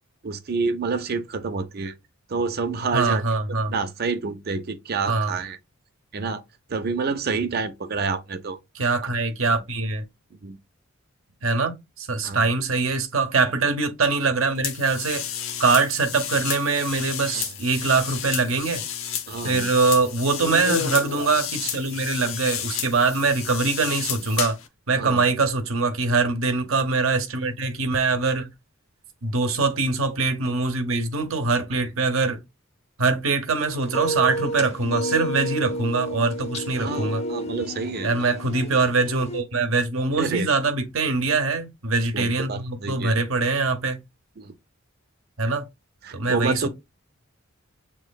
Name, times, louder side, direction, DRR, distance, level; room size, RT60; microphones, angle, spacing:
voice 1, 0.2-1.9 2.3-3.2 3.7-5.6 6.1-6.4 6.7-8.6 10.4-10.6 12.2-12.4 17.2-17.5 19.3-19.7 24.9-25.2 36.8-38.3 40.2-40.5 42.1-43.1 44.4-44.5 46.0-46.7, right 4 dB, 50° right, 0.6 m, -28 dB
voice 2, 2.9-3.7 5.1-5.3 8.7-10.0 11.4-15.3 15.6-18.8 19.4-24.6 24.9-28.5 29.2-32.4 33.0-37.2 38.0-44.0 45.4-45.6 46.1-46.7, right 3 dB, 75° right, 0.9 m, -23 dB
sound 1, 14.6-24.7, left 8 dB, 75° left, 0.7 m, -31 dB
sound 2, 33.6-39.4, equal, 30° left, 0.6 m, -31 dB
7.1 x 3.0 x 2.3 m
head